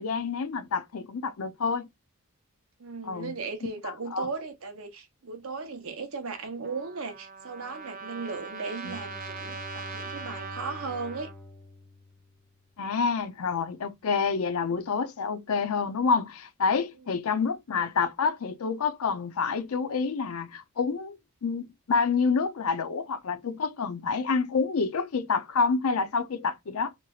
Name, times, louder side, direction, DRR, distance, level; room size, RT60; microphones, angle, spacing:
voice 1, 0.0-1.9 3.1-3.3 3.8-4.3 8.8-8.9 12.8-26.9, left 5 dB, 80° left, 0.5 m, -28 dB
voice 2, 2.8-11.3 14.6-14.8, right 4 dB, 75° right, 0.8 m, -37 dB
Trumpet, 6.6-11.3, right 4 dB, 40° right, 0.6 m, -41 dB
Bowed string instrument, 8.8-12.8, left 2 dB, 5° left, 0.4 m, -45 dB
3.1 x 2.9 x 2.3 m
head